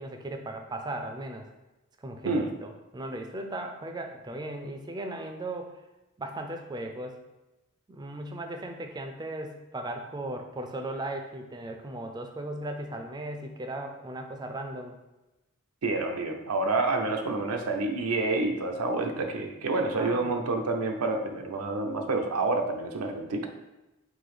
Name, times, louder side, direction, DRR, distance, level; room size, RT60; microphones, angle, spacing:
voice 1, 0.0-1.5 2.0-5.7 6.2-7.2 7.9-15.0 19.9-20.4, right 1 dB, 20° right, 4 dB, 0.4 m, -37 dB
voice 2, 15.8-23.5, right 3 dB, 85° right, 4 dB, 0.6 m, -28 dB
3.9 x 2.7 x 4.8 m, 1.0 s
head